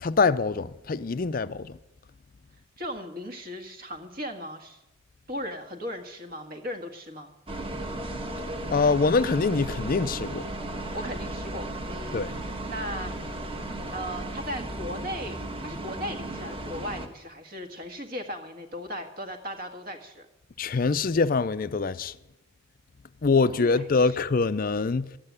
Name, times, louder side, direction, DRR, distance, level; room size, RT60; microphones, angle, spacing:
voice 1, 0.0-1.8 8.7-10.5 12.1-12.4 20.6-22.2 23.2-25.1, left 4 dB, 40° left, 0.5 m, -24 dB
voice 2, 2.8-4.8 5.3-7.3 10.9-12.3 12.7-13.1 13.9-20.2 23.5-24.1, equal, 45° right, 1.7 m, -37 dB
sound 1, 7.5-17.1, right 1 dB, 25° right, 1.4 m, -35 dB
13.0 x 8.8 x 9.6 m
head